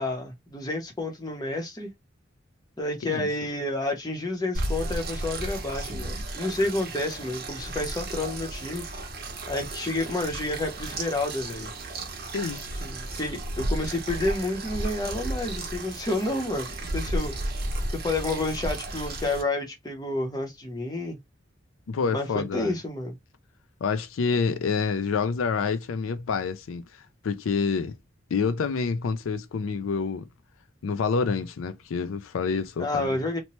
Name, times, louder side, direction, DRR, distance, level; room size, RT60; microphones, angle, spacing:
voice 1, 0.0-1.9 2.8-8.8 9.5-11.7 12.8-17.3 18.0-21.2 22.1-23.1 32.8-33.4, left 2 dB, 20° left, 0.7 m, -30 dB
sound 1, 4.5-19.4, right 1 dB, 50° right, 0.7 m, -33 dB
voice 2, 12.3-12.7 21.9-22.8 23.8-26.9 27.2-28.0 28.3-30.3 30.8-33.2, left 5 dB, 90° left, 0.4 m, -27 dB
2.9 x 2.1 x 2.9 m
head